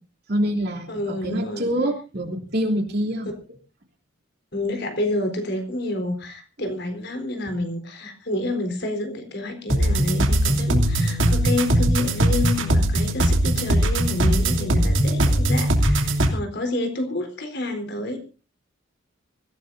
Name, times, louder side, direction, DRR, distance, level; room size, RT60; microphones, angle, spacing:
voice 1, 0.3-0.9 1.2-3.3, equal, 55° right, 1 dB, 3.1 m, -25 dB
voice 2, 0.9-1.7 4.5-18.2, left 2 dB, 55° left, 6 dB, 3.9 m, -29 dB
sound 1, 9.7-16.3, right 1 dB, 70° right, 2.9 m, -20 dB
24.5 x 16.0 x 2.7 m, 0.34 s
head